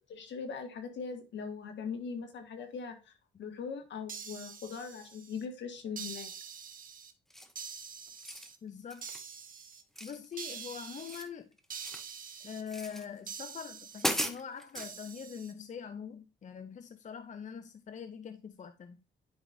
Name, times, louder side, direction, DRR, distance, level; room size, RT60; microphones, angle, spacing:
voice 1, 0.1-3.0 3.4-6.3, left 5 dB, 65° left, 1.6 m, -40 dB
sound 1, 4.1-5.4 6.0-7.1 7.6-8.6 9.0-9.8 10.4-11.2 11.7-12.6 13.3-14.2 14.8-15.5, right 7 dB, 45° right, 1.1 m, -45 dB
sound 2, 7.3-7.7 8.1-8.5 8.9-9.3 9.9-10.6 10.9-12.1 12.7-13.1 13.6-13.7 14.0-14.9, equal, ahead, 0.9 m, -37 dB
voice 2, 8.6-9.2 10.0-11.5 12.4-19.0, left 7 dB, 40° left, 0.6 m, -43 dB
10.5 x 5.0 x 2.6 m
cardioid pair, 90°, 20 cm